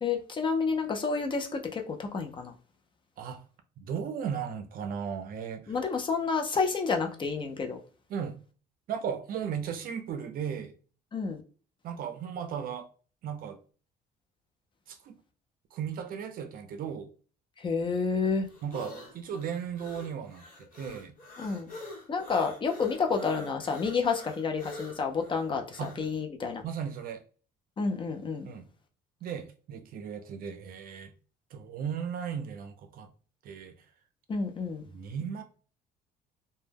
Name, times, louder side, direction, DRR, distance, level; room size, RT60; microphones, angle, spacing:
voice 1, 0.0-2.5 5.7-7.8 11.1-11.4 17.6-18.5 21.4-21.7 22.1-26.6 27.8-28.5 34.3-34.9, left 5 dB, 30° left, 0.5 m, -30 dB
voice 2, 3.8-5.7 8.1-8.4 8.9-10.7 11.8-12.9 13.2-13.6 14.9-15.2 15.7-17.1 18.6-21.1 25.8-25.9 26.6-27.2 28.4-28.7 29.2-31.1 31.5-33.1 33.4-33.8 34.9-35.4, right 7 dB, 60° right, 0.5 m, -36 dB
sound 1, 17.8-26.1, left 2 dB, 55° left, 1.0 m, -46 dB
2.1 x 2.1 x 3.3 m
cardioid pair, 110°, 17 cm